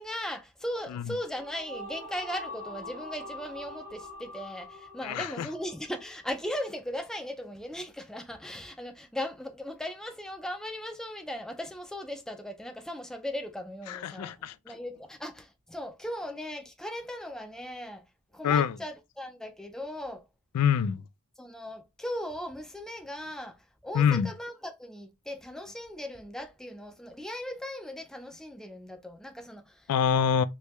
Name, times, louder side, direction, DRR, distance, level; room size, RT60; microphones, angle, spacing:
voice 1, 0.0-18.0 18.3-20.2 21.4-29.9, left 1 dB, ahead, 0.4 m, -38 dB
sound 1, 1.0-6.5, left 1 dB, 40° right, 0.9 m, -44 dB
voice 2, 5.0-5.5 13.9-14.5 18.4-18.7 20.5-21.0 23.9-24.3 29.9-30.4, left 7 dB, 85° left, 0.3 m, -25 dB
3.3 x 3.2 x 3.0 m
head